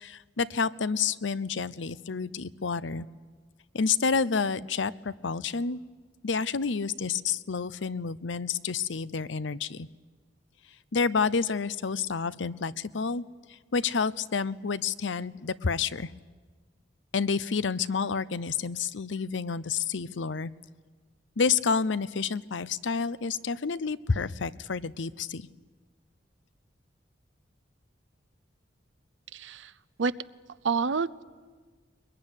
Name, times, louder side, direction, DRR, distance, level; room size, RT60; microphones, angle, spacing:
voice 1, 0.0-3.1 3.7-5.8 6.2-9.9 10.9-13.2 13.5-16.1 17.1-20.5 21.4-25.5, left 5 dB, 80° left, 17 dB, 0.7 m, -29 dB
voice 2, 29.3-29.7 30.0-30.1 30.6-31.2, right 5 dB, 85° right, 15 dB, 0.7 m, -28 dB
22.5 x 21.5 x 10.0 m, 1.5 s
head